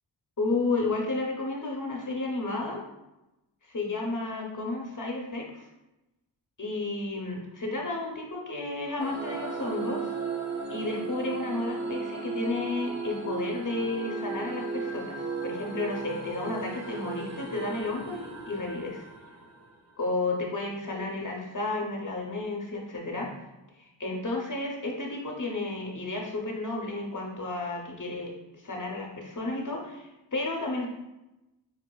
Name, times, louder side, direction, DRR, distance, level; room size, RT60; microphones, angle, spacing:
voice 1, 0.4-2.8 3.6-5.7 6.6-10.1 10.7-19.0 20.0-23.4 23.8-30.9, left 2 dB, 45° left, 0 dB, 0.6 m, -32 dB
sound 1, 9.0-19.9, right 4 dB, 40° right, 0.6 m, -36 dB
4.7 x 2.5 x 2.2 m, 0.97 s
wide cardioid pair, 90°, 45 cm